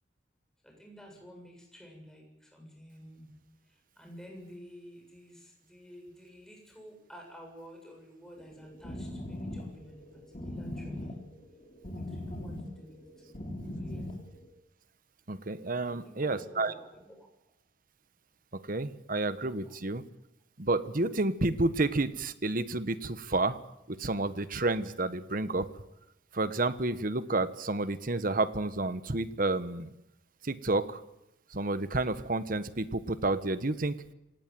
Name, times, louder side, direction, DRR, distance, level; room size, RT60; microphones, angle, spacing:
voice 1, 0.6-3.3 3.6-11.3 11.9-13.0 13.2-13.4 13.7-14.2 15.8-17.3 19.4-19.8, equal, 5° left, 1 dB, 7.4 m, -51 dB
sound 1, 8.4-14.5, left 1 dB, 40° left, 3.9 m, -40 dB
voice 2, 15.3-16.7 18.5-20.0 20.6-23.6 23.9-25.7 26.3-29.9 30.4-31.0 31.5-34.0, right 2 dB, 50° right, 13 dB, 1.3 m, -30 dB
27.0 x 18.5 x 7.7 m, 0.87 s
head